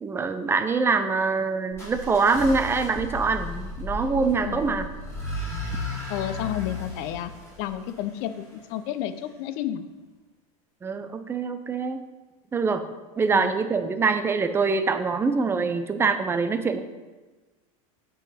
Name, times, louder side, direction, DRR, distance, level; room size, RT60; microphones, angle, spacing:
voice 1, 0.0-4.9 10.8-12.0 12.5-12.9 13.2-16.8, right 4 dB, 15° right, 9 dB, 0.4 m, -24 dB
sound 1, 1.7-8.6, left 2 dB, 15° left, 2.4 m, -35 dB
voice 2, 4.4-4.8 6.1-7.3 7.6-9.8 13.3-13.5, left 11 dB, 50° left, 12 dB, 0.5 m, -31 dB
8.9 x 3.9 x 4.2 m, 1.2 s
supercardioid pair, 135°, 18 cm